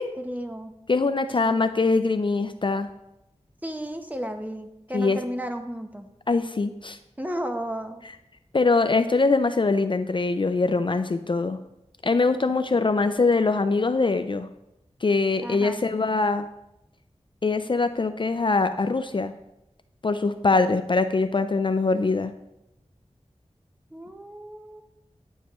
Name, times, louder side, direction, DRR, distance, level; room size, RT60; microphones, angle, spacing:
voice 1, 0.2-0.8 1.4-1.7 3.6-6.1 7.2-8.1 15.4-15.9 23.9-24.8, equal, 15° right, 5 dB, 0.9 m, -33 dB
voice 2, 0.9-2.9 4.9-5.2 6.3-7.0 8.5-11.6 12.0-14.5 15.0-16.5 17.4-19.3 20.0-22.3, left 3 dB, 45° left, 10 dB, 0.4 m, -23 dB
10.5 x 7.3 x 3.1 m, 0.87 s
wide cardioid pair, 60°, 12 cm